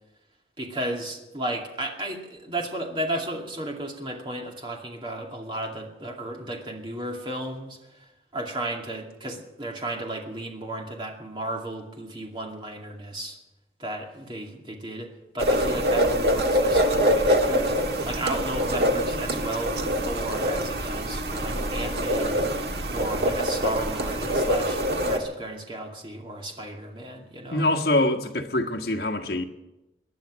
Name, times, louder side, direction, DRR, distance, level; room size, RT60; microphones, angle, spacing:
voice 1, 0.6-7.8 8.3-13.4 13.8-17.7 18.1-27.6, right 1 dB, 30° right, 2.4 m, -34 dB
sound 1, 15.4-25.2, equal, 70° right, 1.5 m, -24 dB
voice 2, 27.5-29.4, left 1 dB, 60° left, 1.5 m, -24 dB
19.5 x 11.0 x 6.4 m
head